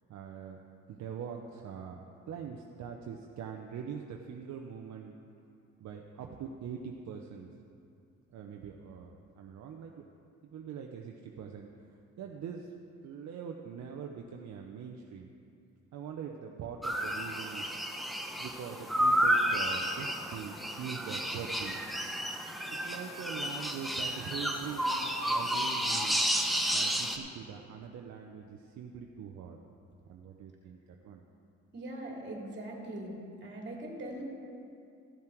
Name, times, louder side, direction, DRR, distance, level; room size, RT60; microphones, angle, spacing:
voice 1, 0.1-0.6 0.9-5.1 5.8-7.5 8.3-10.0 10.4-11.7 12.2-12.7 13.0-15.3 15.9-17.7 18.4-21.8 22.7-26.2 26.7-29.6 30.1-31.2, right 7 dB, 65° right, 2 dB, 0.8 m, -43 dB
sound 1, 16.8-27.2, equal, ahead, 0.9 m, -31 dB
voice 2, 31.7-33.1 33.4-34.2, right 1 dB, 35° right, -1 dB, 2.6 m, -41 dB
14.5 x 7.3 x 4.5 m, 2.5 s
cardioid pair, 90°, 30 cm